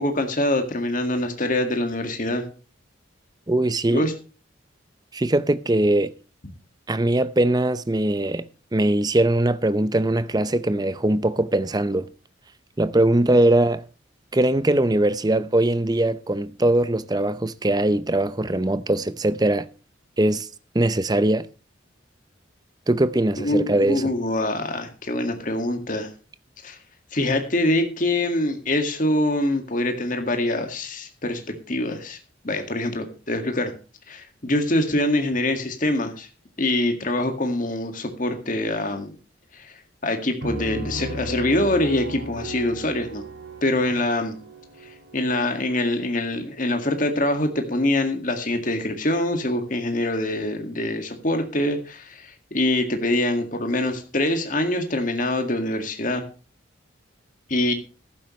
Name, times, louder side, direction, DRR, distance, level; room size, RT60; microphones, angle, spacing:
voice 1, 0.0-2.5 3.9-4.1 23.4-26.1 26.6-26.8 27.1-32.2 32.4-33.7 34.1-36.3 36.6-39.1 39.5-39.7 40.0-43.2 43.6-44.4 45.1-56.2 57.5-57.7, left 1 dB, 40° left, 1.9 m, -24 dB
voice 2, 3.5-4.0 5.1-6.1 6.9-8.4 8.7-12.1 12.8-13.9 14.3-19.7 20.2-20.5 20.7-21.5 22.9-24.0, right 1 dB, 20° right, 0.6 m, -21 dB
Piano, 40.4-45.9, right 1 dB, 75° right, 5.4 m, -36 dB
14.5 x 11.5 x 3.1 m
head